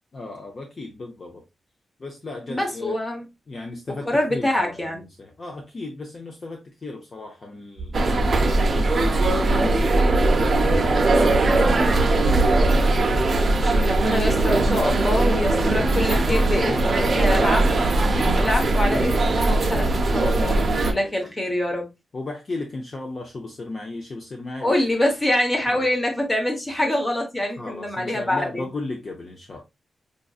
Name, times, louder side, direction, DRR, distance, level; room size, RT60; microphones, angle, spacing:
voice 1, 0.1-1.4 2.0-3.0 3.5-11.9 15.1-17.6 20.2-21.3 22.1-24.8 25.7-25.9 27.6-29.6, left 2 dB, 35° left, 0.5 m, -36 dB
voice 2, 2.5-3.3 4.0-5.0 13.5-17.6 18.4-21.9 24.6-28.6, left 1 dB, 15° left, 1.0 m, -25 dB
sound 1, 7.8-16.2, right 2 dB, 90° right, 0.5 m, -28 dB
sound 2, 7.9-20.9, right 2 dB, 40° right, 0.6 m, -20 dB
5.0 x 2.6 x 2.3 m
wide cardioid pair, 170°, 0 cm